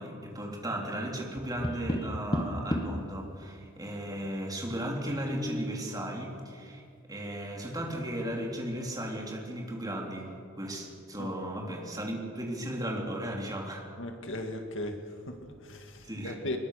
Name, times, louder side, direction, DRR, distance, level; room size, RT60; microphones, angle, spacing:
voice 1, 0.0-6.8 7.1-13.9 16.0-16.4, right 1 dB, 20° right, 0 dB, 3.5 m, -36 dB
Tap, 1.4-3.1 5.1-5.8, equal, 20° left, 1.6 m, -33 dB
voice 2, 14.0-16.6, left 1 dB, 60° left, 5 dB, 2.2 m, -38 dB
24.5 x 21.5 x 6.7 m, 2.4 s
head